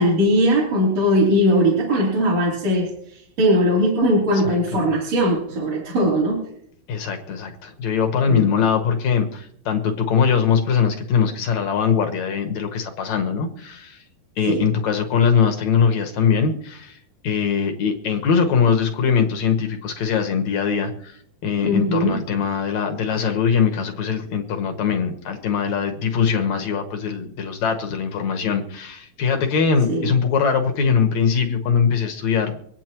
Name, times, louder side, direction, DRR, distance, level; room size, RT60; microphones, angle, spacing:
voice 1, 0.0-6.4 8.3-8.4 14.5-14.6 21.6-22.1 29.9-30.1, equal, 45° right, -5 dB, 4.4 m, -19 dB
voice 2, 4.4-4.9 6.9-14.0 14.4-17.0 17.2-32.5, left 6 dB, 60° left, 5 dB, 2.1 m, -21 dB
26.0 x 9.3 x 3.0 m, 0.69 s
omnidirectional pair, 4.4 m